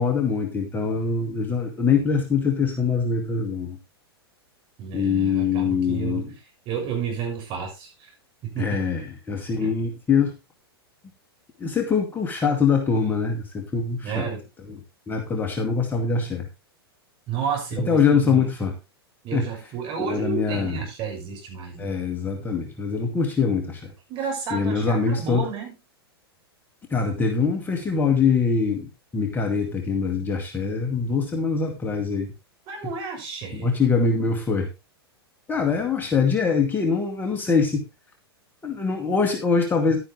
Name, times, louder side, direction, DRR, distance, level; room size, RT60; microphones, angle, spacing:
voice 1, 0.0-3.8 4.9-6.3 8.6-10.3 11.6-14.3 14.7-14.8 15.1-16.5 17.9-18.7 19.3-19.5 20.0-20.8 21.8-23.9 24.5-25.4 26.9-32.3 33.5-34.7 35.5-37.9 38.6-40.0, left 5 dB, 15° left, 2 dB, 2.1 m, -23 dB
voice 2, 4.8-6.3 6.7-8.1 8.4-8.8 9.6-9.8 14.0-14.5 17.3-18.5 19.2-21.9 24.1-25.8 32.7-33.7, right 7 dB, 40° right, 2 dB, 6.2 m, -31 dB
11.5 x 9.8 x 3.2 m, 0.26 s
hypercardioid pair, 105°, 13 cm